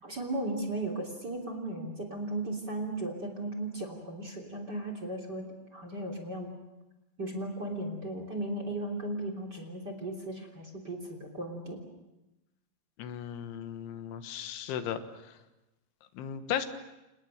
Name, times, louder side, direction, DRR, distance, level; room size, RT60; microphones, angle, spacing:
voice 1, 0.0-5.5 5.7-6.5 7.2-11.8, right 1 dB, 25° right, 5 dB, 3.1 m, -36 dB
voice 2, 13.0-15.0 16.2-16.7, left 9 dB, 85° left, 9 dB, 3.8 m, -35 dB
29.0 x 28.5 x 6.6 m, 0.99 s
omnidirectional pair, 5.2 m